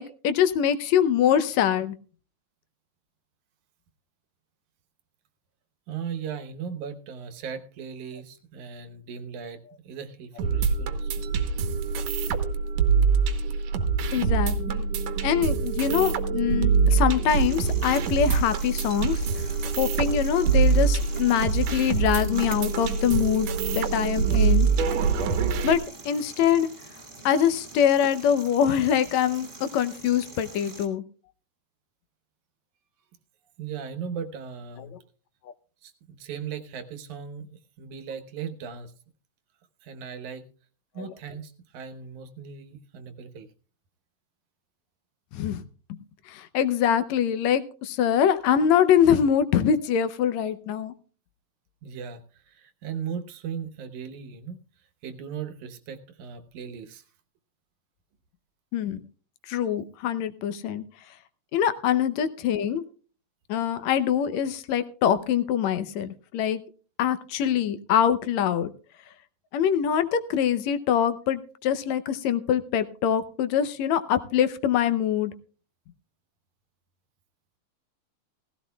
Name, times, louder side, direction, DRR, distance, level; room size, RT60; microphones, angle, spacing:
voice 1, 0.0-2.0 14.1-14.9 15.2-19.5 19.8-24.7 25.6-25.8 26.1-26.7 27.3-31.0 41.0-41.1 45.3-45.6 45.9-46.0 46.3-50.9 58.7-59.0 59.5-60.8 61.5-62.8 63.5-66.6 67.0-68.7 69.5-75.3, left 9 dB, 75° left, 11 dB, 1.9 m, -24 dB
voice 2, 5.9-11.3 33.6-35.0 35.8-38.9 39.8-40.5 40.9-43.5 51.8-54.6 55.0-57.0, right 7 dB, 85° right, 7 dB, 2.5 m, -38 dB
sound 1, 10.4-25.7, right 5 dB, 70° right, 2.1 m, -24 dB
sound 2, 17.3-30.9, right 2 dB, 35° right, 0.7 m, -43 dB
17.0 x 15.5 x 2.2 m, 0.38 s
omnidirectional pair, 3.3 m